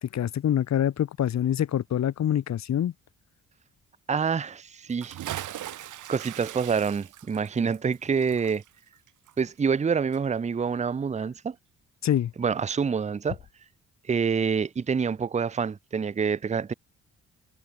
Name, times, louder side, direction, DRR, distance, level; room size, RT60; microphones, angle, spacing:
voice 1, 0.0-2.9 12.0-12.3, left 10 dB, 65° left, 2.5 m, -25 dB
voice 2, 4.1-5.2 5.5-8.6 9.4-11.5 12.4-13.4 14.1-16.7, right 6 dB, 25° right, 0.7 m, -27 dB
Bathtub (filling or washing) / Splash splatter, 4.9-9.9 10.1-10.2, right 13 dB, 80° right, 7.7 m, -40 dB
cardioid pair, 90°, 30 cm